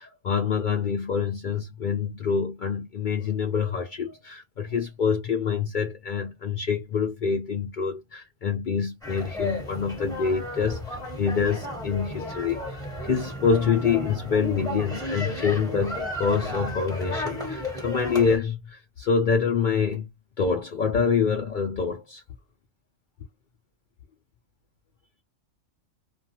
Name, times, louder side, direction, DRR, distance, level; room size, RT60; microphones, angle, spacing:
voice 1, 0.0-20.1 20.4-22.2, left 6 dB, 65° left, 0.5 m, -26 dB
sound 1, 9.0-18.4, left 1 dB, 5° left, 1.2 m, -33 dB
2.3 x 2.3 x 2.7 m
omnidirectional pair, 1.3 m